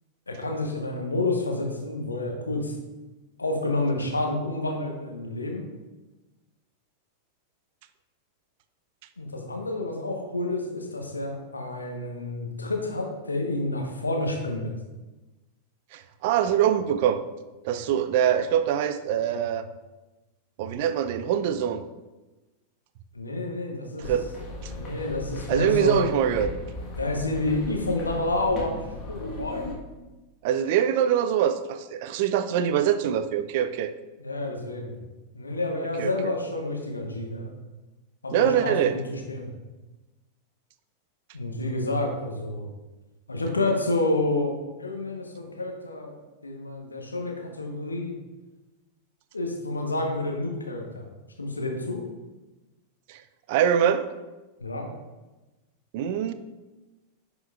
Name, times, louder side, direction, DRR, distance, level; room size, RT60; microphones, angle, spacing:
voice 1, 0.3-2.7 3.4-5.7 9.2-14.7 23.1-24.1 24.7-26.1 27.0-28.8 29.1-29.7 34.2-34.9 35.3-37.5 38.2-39.5 41.3-42.7 43.3-46.2 46.4-48.1 49.3-51.1 51.4-52.0 54.6-54.9, left 2 dB, 80° left, 2 dB, 1.1 m, -29 dB
voice 2, 15.9-17.2 17.6-19.7 20.6-21.8 24.0-24.3 24.6-24.7 25.5-26.5 30.4-33.9 36.0-36.1 38.3-39.0 53.1-53.2 53.5-54.0 55.9-56.3, right 9 dB, 50° right, 11 dB, 0.4 m, -24 dB
sound 1, 24.0-29.7, left 2 dB, 30° left, 1.4 m, -37 dB
10.5 x 5.1 x 2.5 m, 1.1 s
figure-of-eight pair, 90°, 0 cm